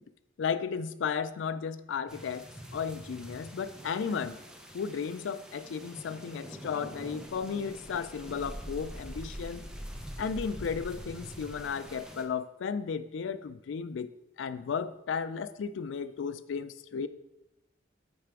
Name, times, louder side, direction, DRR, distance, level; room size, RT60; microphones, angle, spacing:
voice 1, 0.4-4.4 4.7-9.6 10.2-14.1 14.4-17.1, left 6 dB, 75° left, 13 dB, 0.4 m, -34 dB
sound 1, 2.1-12.2, equal, 5° right, 0.5 m, -44 dB
8.4 x 3.4 x 4.6 m, 0.90 s
head